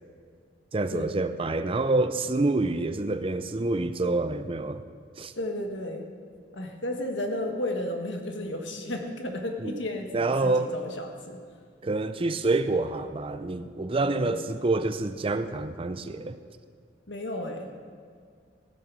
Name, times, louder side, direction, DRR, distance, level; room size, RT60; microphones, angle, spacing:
voice 1, 0.7-4.8 5.2-5.3 9.6-9.8 10.1-10.7 11.8-16.4, right 2 dB, 30° right, 10 dB, 0.5 m, -27 dB
voice 2, 5.3-6.0 6.5-11.4 14.0-14.5 17.1-17.7, left 1 dB, 70° left, 3 dB, 1.6 m, -33 dB
16.5 x 8.9 x 6.2 m, 2.1 s
head